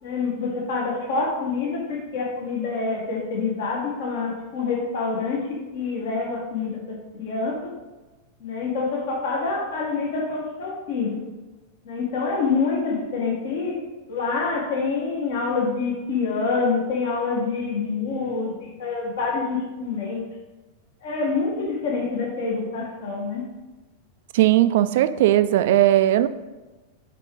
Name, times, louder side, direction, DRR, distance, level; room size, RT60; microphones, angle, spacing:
voice 1, 0.0-7.7 8.4-11.2 11.8-13.8 14.1-18.5 18.8-20.2 21.0-23.4, left 4 dB, 55° left, -2 dB, 1.4 m, -26 dB
voice 2, 24.3-26.3, right 13 dB, 55° right, 13 dB, 0.3 m, -18 dB
5.8 x 4.8 x 3.6 m, 1.2 s
figure-of-eight pair, 90°, 0 cm